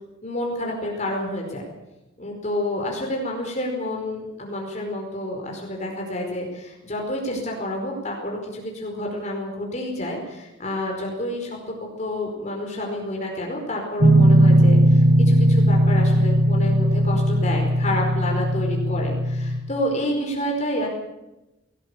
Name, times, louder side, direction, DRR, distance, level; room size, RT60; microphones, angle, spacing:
voice 1, 0.2-1.7 2.2-20.9, left 1 dB, 35° left, 0 dB, 5.0 m, -29 dB
sound 1, 14.0-19.6, right 1 dB, 50° right, 2.3 m, -17 dB
20.5 x 18.0 x 8.5 m, 0.96 s
head